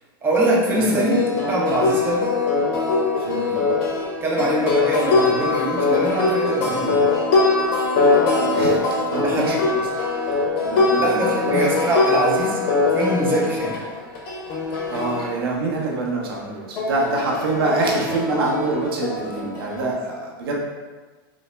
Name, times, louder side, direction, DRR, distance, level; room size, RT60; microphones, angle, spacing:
voice 1, 0.2-2.3 4.2-7.1 9.2-9.6 11.0-12.6 12.9-13.8, right 1 dB, 20° right, -4 dB, 0.8 m, -23 dB
sound 1, 0.8-15.3 16.8-19.8, left 3 dB, 50° left, 0.8 m, -22 dB
voice 2, 3.1-3.6 8.3-11.7 14.5-20.6, right 2 dB, 85° right, -2 dB, 0.8 m, -26 dB
3.9 x 2.0 x 3.2 m, 1.3 s
supercardioid pair, 125°, 12 cm